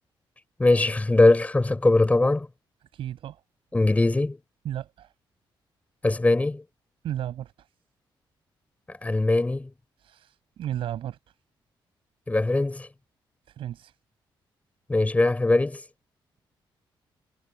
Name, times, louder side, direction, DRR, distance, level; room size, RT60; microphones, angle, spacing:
voice 1, 0.6-2.5 3.7-4.4 6.0-6.6 8.9-9.7 12.3-12.9 14.9-15.8, left 2 dB, 15° left, 5.9 m, -21 dB
voice 2, 2.9-3.4 4.6-5.1 7.0-7.5 10.0-11.2 13.5-13.9, right 11 dB, 85° right, 7.3 m, -34 dB
cardioid pair, 110°, 9 cm